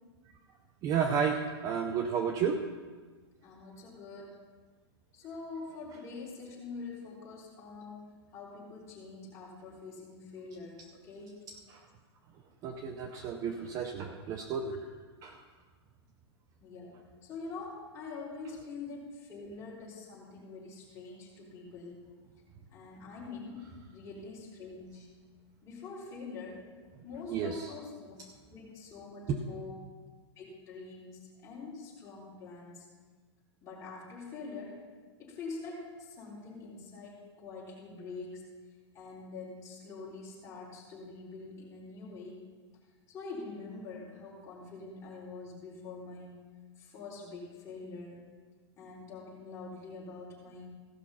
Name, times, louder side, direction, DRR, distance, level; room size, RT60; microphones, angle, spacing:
voice 1, 0.8-2.6 12.6-14.7 15.2-15.4 27.3-27.7 29.3-29.4, right 6 dB, 25° right, 5 dB, 0.6 m, -32 dB
voice 2, 3.4-4.4 5.1-8.0 8.3-11.4 13.4-13.7 14.1-14.4 14.7-14.8 16.6-17.0 17.2-22.0 22.7-23.6 23.9-25.1 25.6-26.6 27.0-28.2 28.5-29.9 30.4-32.9 33.6-34.8 35.2-38.4 38.9-42.5 43.1-46.4 46.8-48.2 48.8-50.7, left 4 dB, 20° left, -6 dB, 3.6 m, -45 dB
16.0 x 5.9 x 5.6 m, 1.4 s
hypercardioid pair, 155°, 14 cm